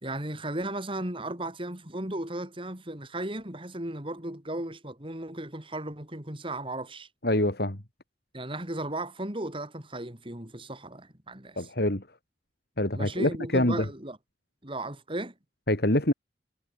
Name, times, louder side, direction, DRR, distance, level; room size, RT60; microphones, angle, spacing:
voice 1, 0.0-7.1 8.3-11.7 12.9-14.2 14.6-15.3, right 1 dB, 30° right, 4.1 m, -35 dB
voice 2, 7.2-7.8 11.6-12.0 12.8-13.9 15.7-16.1, left 1 dB, 60° left, 3.6 m, -25 dB
head